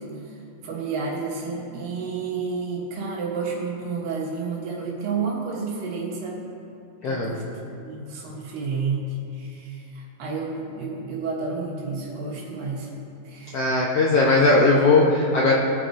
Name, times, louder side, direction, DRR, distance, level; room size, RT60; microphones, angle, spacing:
voice 1, 0.0-6.5 7.0-12.9 13.2-13.7, right 4 dB, 85° right, -4 dB, 3.3 m, -31 dB
voice 2, 7.0-7.3 13.5-15.5, left 3 dB, 70° left, -4 dB, 1.5 m, -18 dB
20.5 x 9.6 x 2.6 m, 2.6 s
omnidirectional pair, 3.9 m